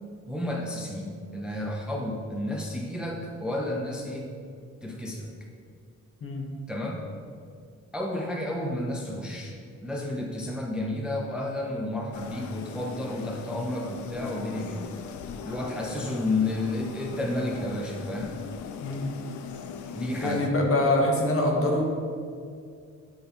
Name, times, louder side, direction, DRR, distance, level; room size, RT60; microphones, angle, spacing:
voice 1, 0.3-4.3 4.8-5.3 6.7-7.0 7.9-9.5 9.8-15.0 15.5-18.4 19.9-20.5, left 1 dB, 5° right, -1 dB, 0.4 m, -31 dB
sound 1, 12.1-20.5, left 6 dB, 80° left, 0.5 m, -40 dB
voice 2, 18.8-19.1 20.2-21.8, left 1 dB, 50° left, 0 dB, 1.0 m, -24 dB
9.1 x 3.9 x 2.9 m, 2.3 s
cardioid pair, 140°, 29 cm